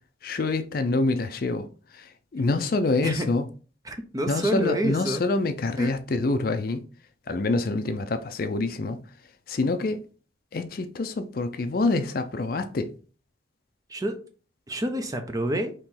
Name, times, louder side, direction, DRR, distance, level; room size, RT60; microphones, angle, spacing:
voice 1, 0.2-3.4 4.3-6.8 7.3-9.0 9.5-10.1 10.5-12.9, left 3 dB, 50° left, 0.4 m, -26 dB
voice 2, 3.9-5.2 5.8-6.0 13.9-14.2 14.7-15.7, right 1 dB, 20° right, 0.5 m, -28 dB
4.3 x 2.9 x 3.7 m
head